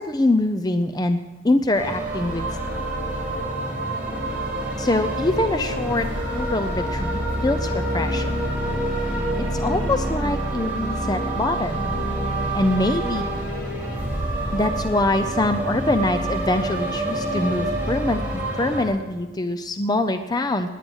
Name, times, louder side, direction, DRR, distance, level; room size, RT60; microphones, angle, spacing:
voice 1, 0.0-2.5 4.8-8.4 9.4-11.9 12.5-13.2 14.5-18.2 18.5-20.7, left 2 dB, 20° left, 9 dB, 0.6 m, -24 dB
sound 1, 1.7-18.8, right 1 dB, 10° right, 5.0 m, -27 dB
18.0 x 10.0 x 6.3 m, 1.2 s
head